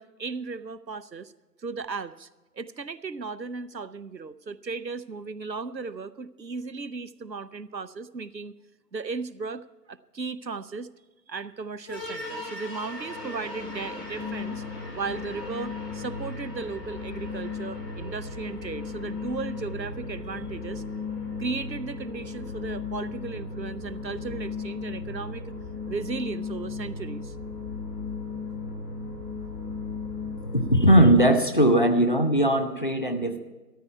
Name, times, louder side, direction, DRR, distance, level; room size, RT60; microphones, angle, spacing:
voice 1, 0.0-1.3 1.6-2.3 2.5-8.5 8.9-10.9 11.3-14.6 14.9-20.8 21.4-25.6 25.9-27.3, right 4 dB, 90° right, 16 dB, 0.9 m, -36 dB
sound 1, 11.9-30.9, left 4 dB, 15° left, 3.3 m, -36 dB
voice 2, 30.5-33.4, right 1 dB, 30° left, 6 dB, 0.8 m, -19 dB
14.0 x 13.5 x 4.5 m, 1.2 s
figure-of-eight pair, 155°, 49 cm